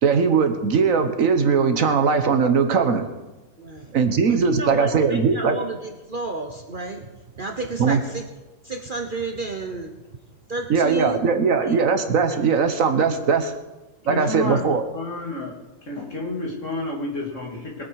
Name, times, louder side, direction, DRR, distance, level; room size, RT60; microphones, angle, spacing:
voice 1, 0.0-3.1 3.9-5.6 7.8-8.0 10.7-13.5 14.1-14.8, right 5 dB, 65° right, 7 dB, 1.4 m, -20 dB
voice 2, 3.6-3.9 4.3-7.0 7.4-8.2 8.6-9.9 10.5-11.2 11.6-11.8, right 3 dB, 40° right, 4 dB, 1.0 m, -31 dB
voice 3, 14.0-15.6 15.9-17.8, left 2 dB, 55° left, -1 dB, 2.9 m, -30 dB
22.5 x 8.2 x 4.8 m, 1.1 s
omnidirectional pair, 1.6 m